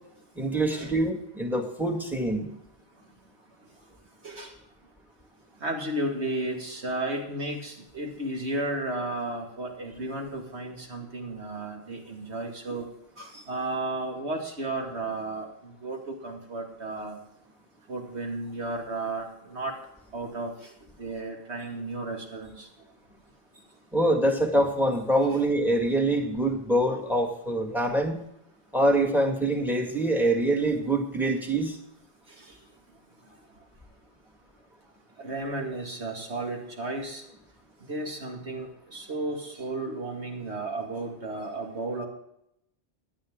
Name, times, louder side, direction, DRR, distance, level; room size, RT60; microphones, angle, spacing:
voice 1, 0.4-2.5 23.9-28.2 28.7-31.8, right 1 dB, ahead, 3 dB, 2.0 m, -25 dB
voice 2, 5.6-12.9 13.2-17.2 17.9-19.7 20.1-20.7 21.0-22.7 32.4-32.5 35.2-37.2 37.9-42.0, right 2 dB, 80° right, 2 dB, 2.5 m, -33 dB
17.5 x 10.5 x 3.8 m, 0.78 s
omnidirectional pair, 1.1 m